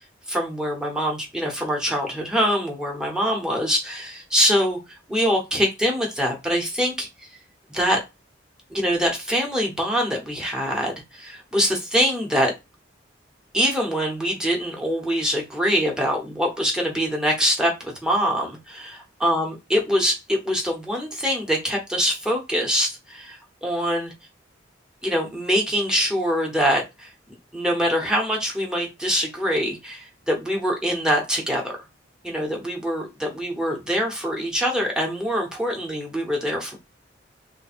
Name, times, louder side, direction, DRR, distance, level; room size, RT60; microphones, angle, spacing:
voice 1, 0.3-4.8 5.1-7.1 7.7-8.0 8.7-12.5 13.5-19.0 19.2-24.1 25.0-27.1 27.5-31.7 32.2-36.8, equal, 5° right, -1 dB, 0.9 m, -24 dB
3.2 x 2.2 x 4.3 m, 0.23 s
head